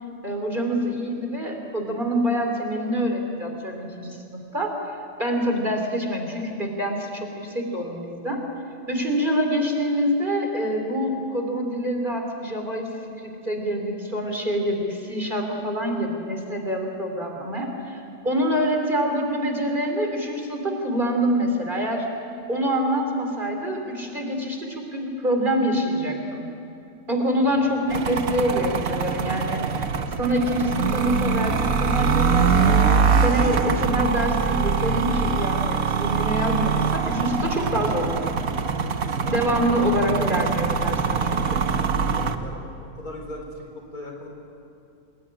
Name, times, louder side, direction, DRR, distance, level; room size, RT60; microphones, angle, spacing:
voice 1, 0.2-8.4 8.9-12.9 13.2-22.1 22.5-26.4 27.1-29.8 30.2-32.8 33.2-38.6 39.3-41.7, equal, 25° right, 2 dB, 3.6 m, -26 dB
sound 1, 27.9-42.4, right 5 dB, 55° right, 1.5 m, -23 dB
voice 2, 38.8-39.8 42.1-44.3, left 1 dB, 55° left, 1 dB, 5.0 m, -39 dB
29.0 x 20.5 x 9.9 m, 2.5 s
omnidirectional pair, 1.9 m